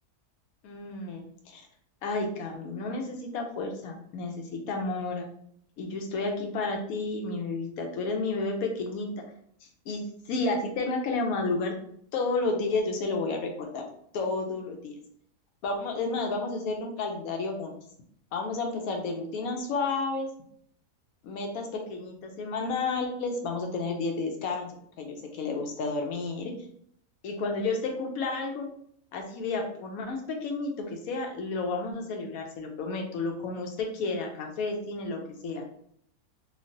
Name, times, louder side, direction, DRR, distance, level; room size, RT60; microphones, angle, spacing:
voice 1, 0.6-1.6 2.0-5.2 5.8-9.1 9.9-10.0 10.3-11.7 12.1-13.8 14.1-15.0 15.6-17.7 18.3-20.3 21.2-24.7 25.0-26.5 27.2-28.7 29.1-35.6, left 3 dB, 70° left, 3 dB, 0.9 m, -31 dB
3.1 x 2.4 x 2.5 m, 0.66 s
omnidirectional pair, 1.8 m